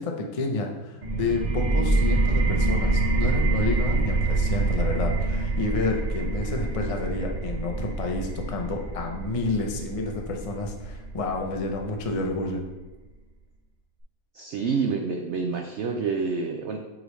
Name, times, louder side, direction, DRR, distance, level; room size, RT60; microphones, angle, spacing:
voice 1, 0.0-12.6, left 2 dB, 65° left, 1 dB, 0.3 m, -30 dB
sound 1, 1.0-12.4, right 3 dB, 30° right, 0.9 m, -26 dB
voice 2, 14.3-16.8, right 5 dB, 85° right, 4 dB, 0.6 m, -28 dB
8.0 x 3.9 x 3.2 m, 1.2 s
omnidirectional pair, 1.7 m